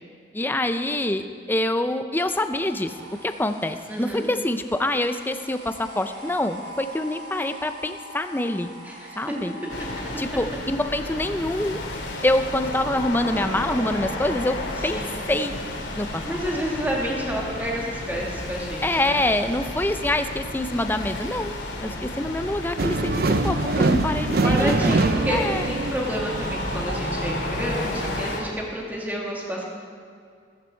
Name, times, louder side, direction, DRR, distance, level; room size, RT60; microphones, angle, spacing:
voice 1, 0.3-2.9 3.2-8.7 9.2-9.5 10.2-11.8 12.2-14.6 14.8-15.0 15.3-15.5 15.9-16.2 18.8-25.6, left 1 dB, 10° left, 8 dB, 0.6 m, -25 dB
sound 1, 2.6-9.9, right 1 dB, 90° right, 4.7 m, -42 dB
voice 2, 3.9-4.3 8.8-9.4 14.8-15.1 16.2-19.2 24.3-29.6, equal, 10° right, -3 dB, 2.5 m, -29 dB
sound 2, 9.7-28.4, left 1 dB, 85° left, 2.4 m, -32 dB
sound 3, 22.8-27.8, right 3 dB, 55° right, 0.6 m, -24 dB
15.0 x 14.5 x 4.5 m, 2.2 s
head